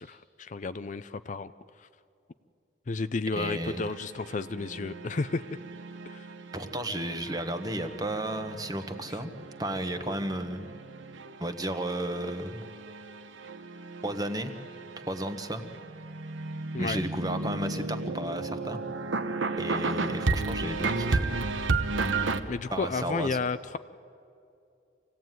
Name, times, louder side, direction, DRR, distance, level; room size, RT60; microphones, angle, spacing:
voice 1, 0.0-1.5 2.9-5.4 6.1-6.3 16.7-17.0 22.5-23.8, left 4 dB, 40° left, 13 dB, 0.5 m, -32 dB
voice 2, 3.3-3.9 6.5-9.3 9.6-10.7 11.4-12.6 14.0-14.5 15.0-15.6 16.8-18.8 19.6-21.3 22.7-23.4, right 1 dB, 20° right, 8 dB, 1.2 m, -33 dB
sound 1, 3.6-22.4, right 3 dB, 85° right, 1.1 m, -34 dB
25.5 x 17.0 x 9.3 m, 2.5 s
head